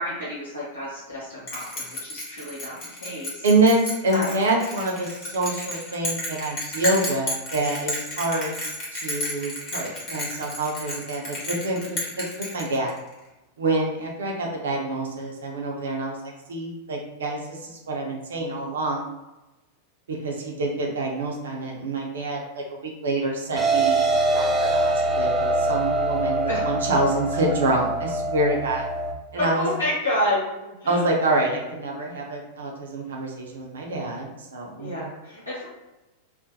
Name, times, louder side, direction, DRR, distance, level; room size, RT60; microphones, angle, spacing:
voice 1, 0.0-3.4 4.1-4.3 26.5-26.7 29.3-31.1 34.8-35.6, left 1 dB, 85° left, -10 dB, 0.8 m, -29 dB
Bell, 1.5-13.1, left 1 dB, 30° left, 1.0 m, -32 dB
voice 2, 3.4-8.5 8.9-12.0 12.4-12.9 13.6-19.1 20.1-28.9 29.3-29.7 30.9-34.9, right 2 dB, 65° right, -1 dB, 0.6 m, -26 dB
sound 1, 23.6-29.1, right 2 dB, 15° right, 0.3 m, -24 dB
2.4 x 2.1 x 2.7 m, 1.0 s
figure-of-eight pair, 90°, 0 cm